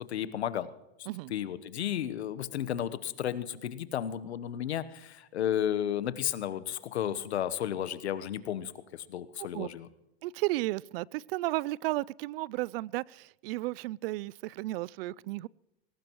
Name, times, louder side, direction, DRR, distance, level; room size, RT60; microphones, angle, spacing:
voice 1, 0.1-0.7 1.3-9.9, left 10 dB, 90° left, 14 dB, 1.1 m, -33 dB
voice 2, 10.2-15.5, right 18 dB, 65° right, 26 dB, 0.4 m, -33 dB
21.5 x 18.0 x 3.1 m, 0.97 s
hypercardioid pair, 115°, 32 cm